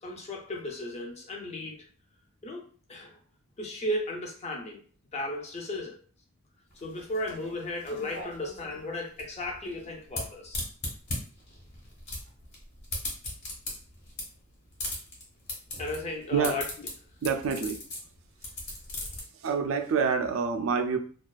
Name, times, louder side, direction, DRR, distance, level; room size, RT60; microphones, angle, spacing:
voice 1, 0.0-1.8 2.4-3.2 3.6-4.8 5.1-6.0 6.8-10.6 15.8-16.6, left 1 dB, 35° left, 0.5 m, -35 dB
sound 1, 6.7-19.2, left 2 dB, 60° left, 1.1 m, -38 dB
voice 2, 17.2-17.8 19.4-21.0, right 5 dB, 70° right, 0.4 m, -27 dB
2.3 x 2.3 x 2.3 m
head